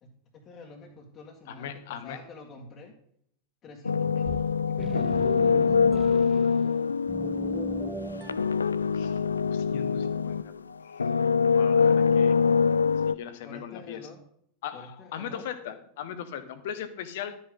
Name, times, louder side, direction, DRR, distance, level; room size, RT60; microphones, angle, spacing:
voice 1, 0.0-2.9 3.6-4.3 4.6-6.5 13.4-14.2 14.7-15.5, left 2 dB, 35° left, -1 dB, 2.0 m, -48 dB
voice 2, 1.5-2.2 8.9-11.1 11.5-12.4 13.1-14.0 14.6-17.4, left 9 dB, 60° left, 11 dB, 1.4 m, -39 dB
sound 1, 3.8-10.6 10.9-13.1, left 6 dB, 80° left, 0.3 m, -24 dB
sound 2, 4.2-6.8 7.1-8.5, right 3 dB, 10° right, 0.6 m, -38 dB
12.5 x 9.6 x 3.9 m, 0.68 s
figure-of-eight pair, 90°, 0 cm